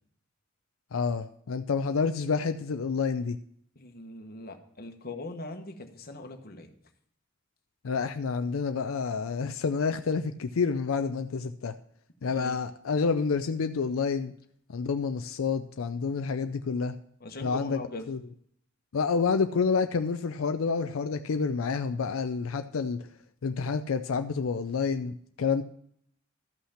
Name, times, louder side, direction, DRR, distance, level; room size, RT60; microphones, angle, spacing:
voice 1, 0.9-3.4 7.8-11.7 12.2-14.3 14.7-17.0 17.4-18.2 18.9-23.0 23.4-25.6, left 5 dB, 85° left, 8 dB, 0.5 m, -29 dB
voice 2, 3.8-6.7 12.3-12.6 17.2-18.1, left 2 dB, 50° left, 5 dB, 1.2 m, -41 dB
13.0 x 5.7 x 5.7 m, 0.69 s
head